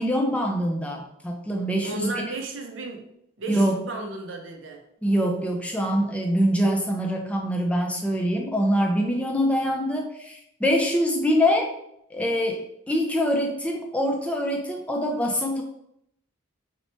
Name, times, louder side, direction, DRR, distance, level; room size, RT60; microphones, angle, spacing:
voice 1, 0.0-2.2 3.5-3.8 5.0-11.7 12.1-15.6, equal, 5° left, 1 dB, 0.4 m, -24 dB
voice 2, 1.8-3.0 3.4-4.8, right 2 dB, 65° right, 3 dB, 0.6 m, -34 dB
3.0 x 2.1 x 4.1 m, 0.77 s
head